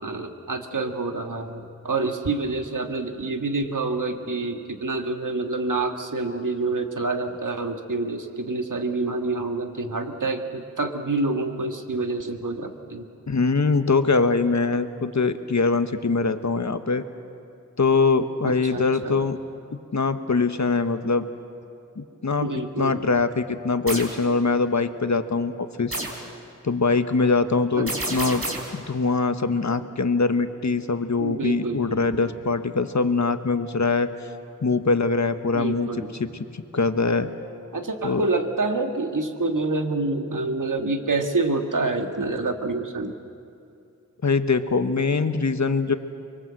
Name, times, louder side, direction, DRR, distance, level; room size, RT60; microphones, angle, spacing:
voice 1, 0.0-13.1 18.4-19.2 22.4-23.0 27.8-28.2 31.2-32.3 35.5-36.1 37.7-43.1, right 3 dB, 75° right, 5 dB, 1.9 m, -27 dB
voice 2, 13.3-17.0 17.8-19.4 19.9-21.2 22.0-25.5 25.8-26.0 26.6-28.4 28.7-34.1 34.6-35.9 36.2-37.3 38.0-38.2 44.2-45.9, left 4 dB, 60° left, 9 dB, 1.3 m, -23 dB
sound 1, 23.9-24.2 25.9-26.3 27.9-28.8, right 1 dB, 45° right, 3.8 m, -30 dB
25.0 x 22.5 x 7.7 m, 2.6 s
wide cardioid pair, 45°, 32 cm